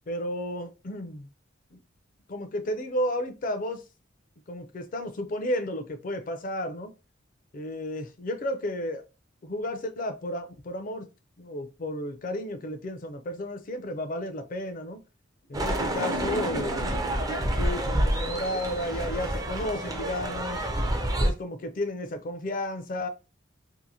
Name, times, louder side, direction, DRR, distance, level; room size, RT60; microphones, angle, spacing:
voice 1, 0.1-1.3 1.7-1.8 2.3-3.8 4.5-6.9 7.5-9.0 9.4-11.1 11.4-15.0 15.5-20.6 21.2-23.1, left 1 dB, 45° left, 0.5 m, -33 dB
sound 1, 15.5-21.3, right 1 dB, 20° right, 0.4 m, -28 dB
sound 2, 15.7-18.7, left 2 dB, 80° left, 0.8 m, -40 dB
2.8 x 2.5 x 2.7 m
head